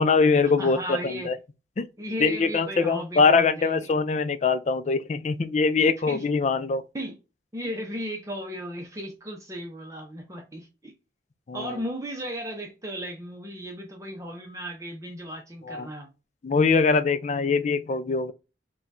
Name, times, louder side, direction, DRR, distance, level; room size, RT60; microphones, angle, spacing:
voice 1, 0.0-1.3 1.8-1.9 2.2-6.8 11.5-11.8 15.7-15.9 16.4-18.3, left 4 dB, 40° left, 0.4 m, -23 dB
voice 2, 0.6-1.3 2.0-4.0 5.8-6.3 6.9-7.2 7.5-10.9 11.5-16.1, equal, 20° right, 0.7 m, -35 dB
4.3 x 2.3 x 2.6 m
head